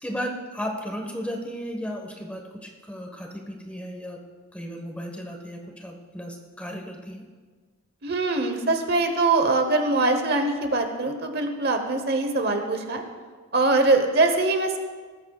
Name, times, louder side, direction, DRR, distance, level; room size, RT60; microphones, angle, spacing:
voice 1, 0.0-4.2 4.5-7.2, equal, 5° left, 1 dB, 1.3 m, -35 dB
voice 2, 8.0-13.0 13.5-14.8, right 2 dB, 45° right, 6 dB, 1.0 m, -22 dB
19.0 x 14.0 x 2.4 m, 1.5 s
head